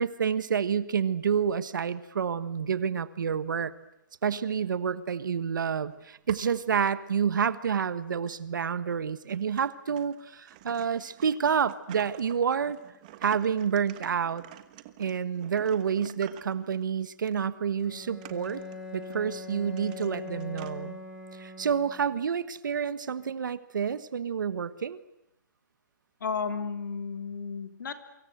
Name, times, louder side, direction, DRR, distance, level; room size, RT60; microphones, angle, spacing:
voice 1, 0.0-3.7 4.2-12.8 13.2-14.4 15.0-18.6 18.9-21.0 21.3-25.0, right 7 dB, 80° right, 14 dB, 1.4 m, -29 dB
sound 1, 5.9-6.7 7.2-7.3 8.3-8.4 8.9-9.0 9.3-16.8 17.3-17.4 17.8-20.7, right 14 dB, 25° right, 1.2 m, -50 dB
Bowed string instrument, 17.8-22.2, left 3 dB, 5° left, 5.3 m, -42 dB
voice 2, 26.2-28.1, left 5 dB, 80° left, 7 dB, 3.6 m, -33 dB
28.5 x 24.5 x 8.0 m, 0.82 s
hypercardioid pair, 180°, 10 cm